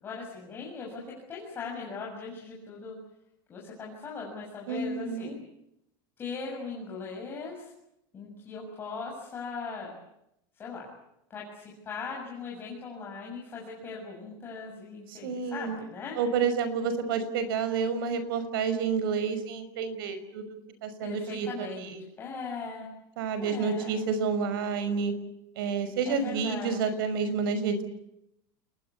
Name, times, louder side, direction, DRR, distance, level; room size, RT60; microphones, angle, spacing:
voice 1, 0.0-2.9 3.5-5.4 6.2-7.7 8.1-9.9 10.6-10.9 11.3-16.2 21.0-22.9 23.4-23.9 26.0-26.8, left 4 dB, 20° left, -3 dB, 7.0 m, -39 dB
voice 2, 4.7-5.4 15.1-15.8 16.2-20.6 20.8-22.0 23.2-25.1 25.6-27.8, right 5 dB, 75° right, 12 dB, 5.9 m, -29 dB
29.0 x 21.5 x 8.4 m, 0.81 s
supercardioid pair, 175°, 12 cm